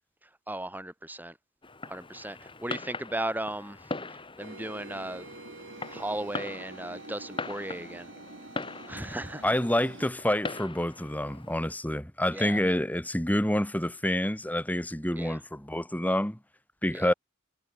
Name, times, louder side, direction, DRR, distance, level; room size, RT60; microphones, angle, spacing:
voice 1, 0.5-1.4 1.9-3.9 4.4-5.3 5.9-8.1 8.9-9.5 12.3-12.6 15.2-15.4 16.9-17.1, right 1 dB, 10° right, 4.6 m, -36 dB
Fireworks, 1.6-11.7, left 3 dB, 25° left, 3.5 m, -41 dB
sound 1, 4.4-10.1, right 2 dB, 65° right, 3.3 m, -46 dB
voice 2, 9.4-16.4 16.8-17.1, left 1 dB, 10° left, 1.4 m, -28 dB
head